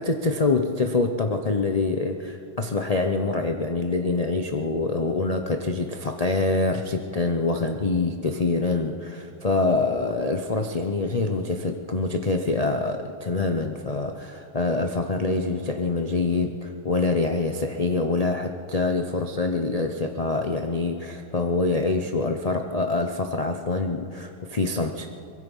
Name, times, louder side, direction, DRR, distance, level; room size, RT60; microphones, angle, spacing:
voice 1, 0.0-25.1, left 3 dB, 50° left, 5 dB, 0.4 m, -25 dB
23.5 x 21.5 x 5.5 m, 2.6 s
omnidirectional pair, 2.0 m